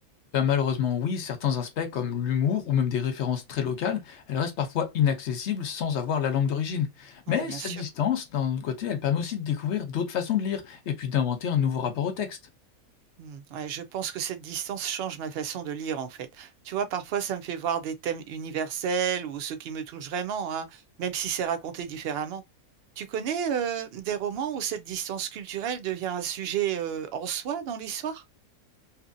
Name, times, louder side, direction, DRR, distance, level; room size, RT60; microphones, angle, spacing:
voice 1, 0.3-12.4, left 8 dB, 60° left, 0.8 m, -27 dB
voice 2, 7.3-7.8 13.2-22.4 23.0-28.2, right 8 dB, 70° right, 0.6 m, -31 dB
2.8 x 2.5 x 2.5 m
omnidirectional pair, 1.5 m